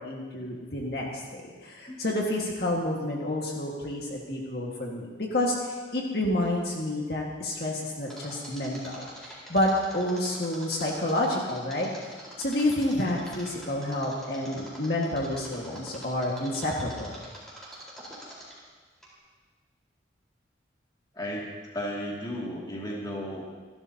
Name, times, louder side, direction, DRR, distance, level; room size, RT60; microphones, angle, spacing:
voice 1, 0.0-9.7 9.9-11.9 12.4-17.1, left 1 dB, 55° left, -2 dB, 1.8 m, -29 dB
Mechanisms, 8.1-18.7 19.0-19.1, right 1 dB, ahead, 4.4 m, -44 dB
voice 2, 21.1-23.4, equal, 20° left, -4 dB, 2.4 m, -34 dB
28.0 x 12.0 x 2.9 m, 1.4 s
head